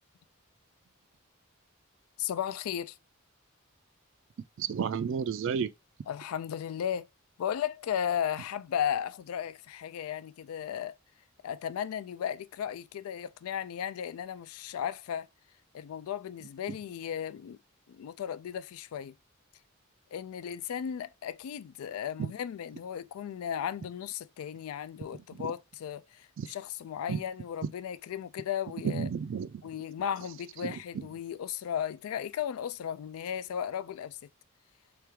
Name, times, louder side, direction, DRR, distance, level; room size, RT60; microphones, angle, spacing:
voice 1, 2.2-3.0 6.1-7.1 7.4-11.0 11.4-15.3 15.7-17.6 17.9-19.2 20.1-29.1 29.6-34.2, left 9 dB, 85° left, 0.3 m, -35 dB
voice 2, 4.6-5.7 25.4-25.5 26.4-26.5 27.1-27.2 28.8-29.5 30.6-30.8, right 7 dB, 60° right, 0.3 m, -31 dB
3.5 x 3.3 x 3.0 m
head